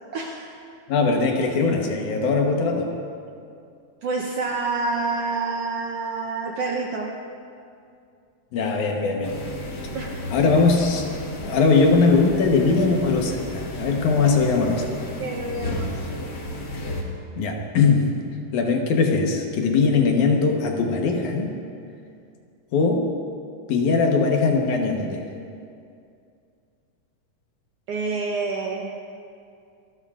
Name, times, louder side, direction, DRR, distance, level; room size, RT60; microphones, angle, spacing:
voice 1, 0.1-0.6 4.0-7.1 9.9-10.3 15.2-16.0 27.9-29.0, right 3 dB, 70° right, 0 dB, 1.5 m, -28 dB
voice 2, 0.9-2.9 8.5-9.4 10.3-11.0 11.4-14.9 17.4-18.2 18.5-21.5 22.7-23.1 23.7-25.2, left 4 dB, 75° left, 2 dB, 2.5 m, -20 dB
sound 1, 9.2-17.0, left 1 dB, 45° left, 1.6 m, -33 dB
28.0 x 12.5 x 2.5 m, 2.4 s
omnidirectional pair, 3.7 m